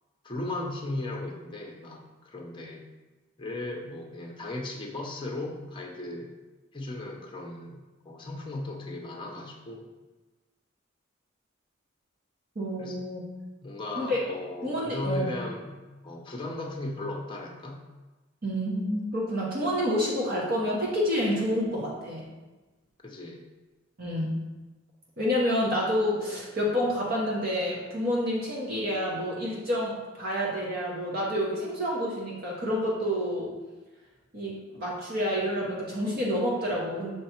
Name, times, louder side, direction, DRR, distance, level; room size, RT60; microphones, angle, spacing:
voice 1, 0.2-2.9 3.4-6.3 6.7-9.9 12.8-13.0 13.6-17.8 23.0-23.4, left 2 dB, 25° left, 1 dB, 0.7 m, -36 dB
voice 2, 12.5-13.3 14.0-14.2 14.6-15.3 18.4-22.2 24.0-24.4 25.2-33.5 34.3-37.1, equal, 50° right, -5 dB, 1.1 m, -28 dB
6.7 x 3.2 x 4.4 m, 1.2 s
head